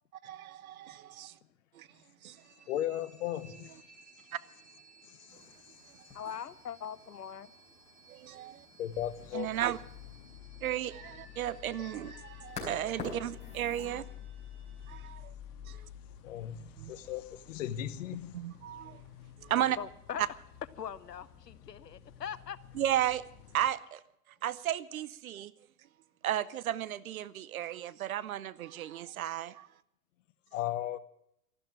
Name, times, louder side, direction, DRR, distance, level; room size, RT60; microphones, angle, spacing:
voice 1, 0.2-1.4 1.7-1.9 2.2-2.4 4.3-4.4 8.1-8.7 9.3-9.8 10.6-14.0 14.9-15.3 15.6-15.9 16.8-16.9 18.3-19.0 19.4-19.8 20.2-20.3 22.7-23.2 23.5-24.0 24.4-25.5 26.2-29.7, right 12 dB, 60° right, 0.9 m, -34 dB
sound 1, 2.2-15.1, right 1 dB, 40° right, 7.7 m, -59 dB
voice 2, 2.7-3.7 8.8-9.5 16.2-18.4 30.5-31.0, left 12 dB, 50° left, 1.3 m, -36 dB
sound 2, 5.3-14.0, left 3 dB, 15° left, 4.6 m, -49 dB
voice 3, 6.1-7.5 19.6-20.2 20.8-22.6, left 8 dB, 90° left, 0.9 m, -41 dB
sound 3, 8.9-23.7, left 10 dB, 30° left, 2.1 m, -51 dB
13.0 x 12.0 x 8.6 m
hypercardioid pair, 120°, 47 cm